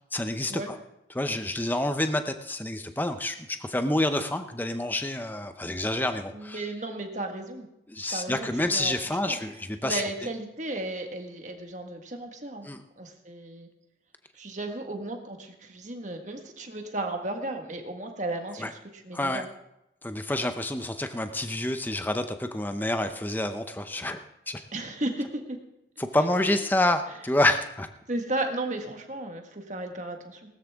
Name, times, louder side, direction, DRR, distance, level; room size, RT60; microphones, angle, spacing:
voice 1, 0.1-0.8 1.1-6.7 7.9-10.0 12.6-12.8 18.6-18.7 19.1-19.5 20.0-24.6 26.0-27.9, left 1 dB, 10° left, 8 dB, 0.6 m, -28 dB
voice 2, 6.3-7.7 8.1-9.4 9.8-12.7 13.0-13.7 14.3-18.6 18.9-19.5 24.7-25.6 28.1-30.4, right 2 dB, 40° right, 4 dB, 1.6 m, -34 dB
19.0 x 13.0 x 3.6 m, 0.86 s
head